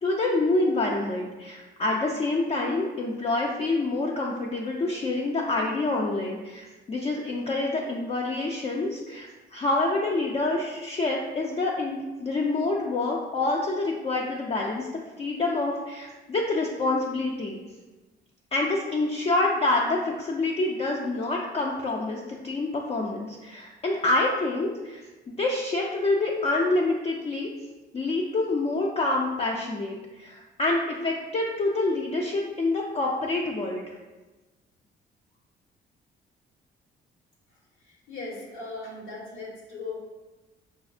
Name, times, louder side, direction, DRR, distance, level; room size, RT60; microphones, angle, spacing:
voice 1, 0.0-14.9 15.2-17.6 18.5-27.5 27.9-33.9, left 2 dB, 30° left, -2 dB, 0.4 m, -27 dB
voice 2, 38.1-39.9, left 3 dB, 90° left, -4 dB, 1.2 m, -38 dB
4.9 x 2.0 x 2.4 m, 1.2 s
cardioid pair, 90°, 20 cm